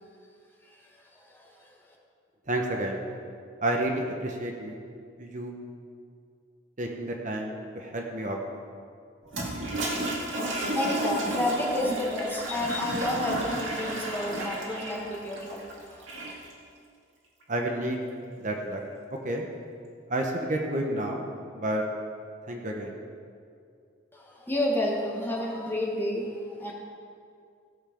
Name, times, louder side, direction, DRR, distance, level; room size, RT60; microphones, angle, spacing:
voice 1, 0.6-1.7 10.5-16.0 24.1-26.7, left 1 dB, 10° left, -2 dB, 1.5 m, -31 dB
voice 2, 2.5-3.0 3.6-4.8 5.2-5.6 6.8-8.4 17.5-18.0 18.4-18.8 19.2-19.5 20.1-21.3 21.5-21.8 22.5-22.9, right 1 dB, 40° right, 1 dB, 1.0 m, -30 dB
Toilet flush, 9.3-16.5, right 1 dB, 75° right, 2.2 m, -32 dB
16.0 x 7.3 x 5.2 m, 2.3 s
head